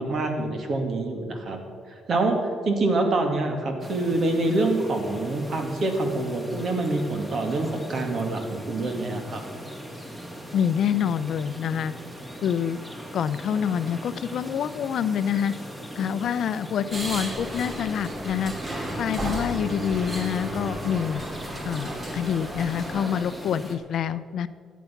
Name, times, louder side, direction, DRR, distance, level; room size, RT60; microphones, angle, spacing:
voice 1, 0.0-1.6 2.1-2.4 2.7-9.4, right 2 dB, 55° right, 4 dB, 2.2 m, -26 dB
sound 1, 3.8-23.8, equal, 15° right, 2.3 m, -40 dB
voice 2, 10.5-11.9 12.4-12.8 13.1-15.5 16.0-18.5 19.0-21.2 21.6-24.5, left 8 dB, 70° left, 15 dB, 0.5 m, -26 dB
sound 2, 16.9-23.2, right 1 dB, 30° right, 2.4 m, -33 dB
14.0 x 9.3 x 5.9 m, 2.1 s
cardioid pair, 90°, 0 cm